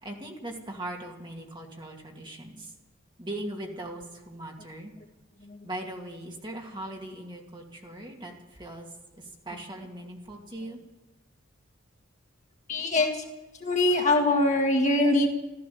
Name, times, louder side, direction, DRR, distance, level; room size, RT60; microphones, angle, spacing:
voice 1, 0.0-2.7 3.2-4.9 5.6-8.9 9.1-10.8, right 1 dB, 20° right, 0 dB, 2.5 m, -39 dB
voice 2, 12.7-13.2 13.6-15.3, left 2 dB, 35° left, 2 dB, 1.8 m, -23 dB
14.5 x 14.0 x 7.0 m, 1.1 s
head